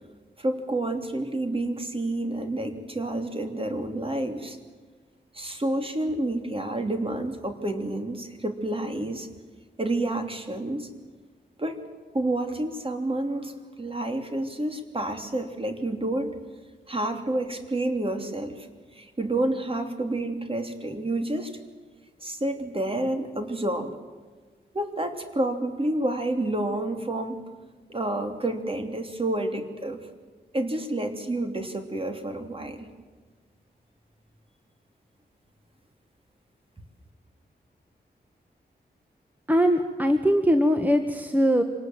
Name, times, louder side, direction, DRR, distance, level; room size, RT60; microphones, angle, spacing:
voice 1, 0.4-4.6 5.3-9.3 9.8-10.9 11.6-11.8 12.1-16.4 16.9-18.7 18.9-21.6 22.2-24.0 24.7-27.4 27.9-30.0 30.5-32.9, right 1 dB, 30° right, 5 dB, 3.0 m, -29 dB
voice 2, 39.5-41.6, equal, 10° right, 6 dB, 1.5 m, -21 dB
25.5 x 19.0 x 7.8 m, 1.4 s
wide cardioid pair, 80°, 17 cm